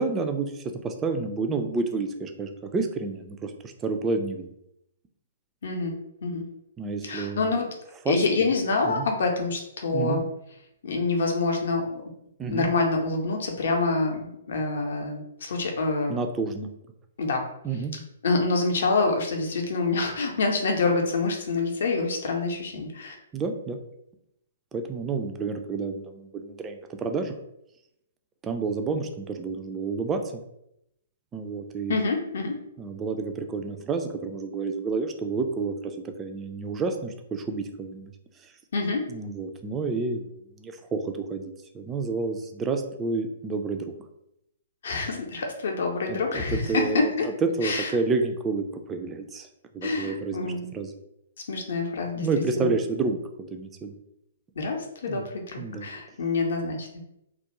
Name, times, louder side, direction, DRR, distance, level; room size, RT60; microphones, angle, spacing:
voice 1, 0.0-4.5 6.8-7.7 8.1-8.5 8.8-9.1 9.9-10.2 12.4-12.7 16.1-16.7 17.6-17.9 23.3-23.8 24.7-27.3 28.4-30.4 31.3-31.9 32.8-38.1 38.4-38.5 39.1-43.9 46.1-49.5 49.7-50.9 52.1-53.9 55.1-55.3 55.6-55.9, right 4 dB, 15° right, 5 dB, 0.3 m, -30 dB
voice 2, 5.6-6.4 7.0-7.7 8.1-10.2 10.8-12.0 12.5-16.1 17.2-17.5 18.2-23.1 31.9-32.6 38.7-39.1 44.8-47.3 47.6-47.9 49.8-50.7 51.5-52.7 54.6-57.1, left 3 dB, 60° left, 2 dB, 0.6 m, -26 dB
2.3 x 2.1 x 2.9 m, 0.81 s
figure-of-eight pair, 120°, 0 cm